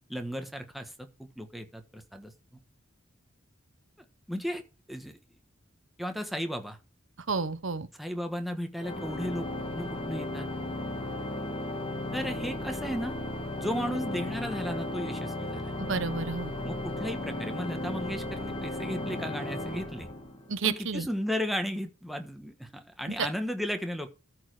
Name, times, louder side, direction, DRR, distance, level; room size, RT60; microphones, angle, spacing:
voice 1, 0.1-2.3 4.3-4.6 4.9-5.2 6.0-6.8 7.9-9.4 9.7-10.5 12.1-13.2 13.6-15.7 16.6-20.1 20.6-24.1, equal, ahead, 1.3 m, -35 dB
voice 2, 7.3-7.9 15.9-16.5 20.5-21.1 23.2-23.3, right 4 dB, 70° right, 0.9 m, -30 dB
Organ, 8.8-20.6, left 1 dB, 25° left, 1.7 m, -35 dB
13.5 x 4.7 x 4.8 m
head